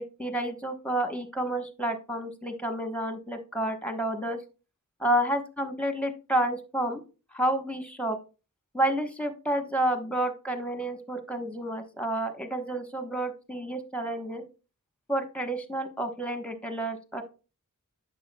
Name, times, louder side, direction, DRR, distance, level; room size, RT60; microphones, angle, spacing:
voice 1, 0.0-4.4 5.0-7.0 7.3-8.2 8.7-14.4 15.1-17.2, right 1 dB, 5° left, 7 dB, 1.2 m, -30 dB
8.6 x 6.5 x 2.2 m, 0.32 s
wide cardioid pair, 45°, 32 cm